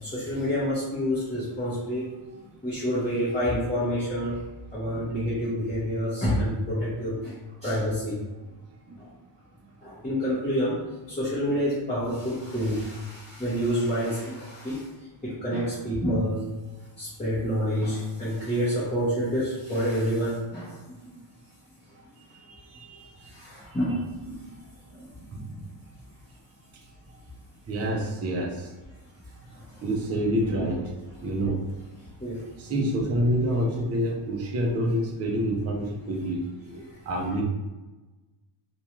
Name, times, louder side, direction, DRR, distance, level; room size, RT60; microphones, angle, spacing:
voice 1, 0.0-2.1 2.6-4.4 4.7-8.2 9.0-9.1 9.8-10.8 11.1-14.9 15.2-16.5 17.0-20.8 21.1-21.2 23.2-24.5 25.0-25.1 29.5-29.8 32.2-32.4, equal, 15° left, -12 dB, 0.7 m, -28 dB
voice 2, 22.2-23.3 25.2-25.7 27.7-28.7 29.8-30.9 31.2-31.6 32.6-37.4, right 1 dB, 30° right, -1 dB, 0.4 m, -28 dB
2.6 x 2.2 x 2.9 m, 1.1 s
wide cardioid pair, 155°, 50 cm